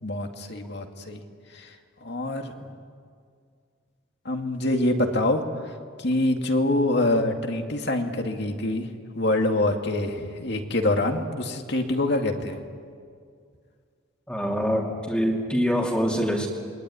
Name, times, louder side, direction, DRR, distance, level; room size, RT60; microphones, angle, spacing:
voice 1, 0.0-1.2 1.6-1.7 2.0-2.7 4.3-5.4 6.0-8.9 9.1-12.6, left 1 dB, 55° left, 4 dB, 2.3 m, -25 dB
voice 2, 14.3-16.5, equal, 5° left, -2 dB, 2.7 m, -24 dB
27.5 x 22.0 x 9.8 m, 2.2 s
head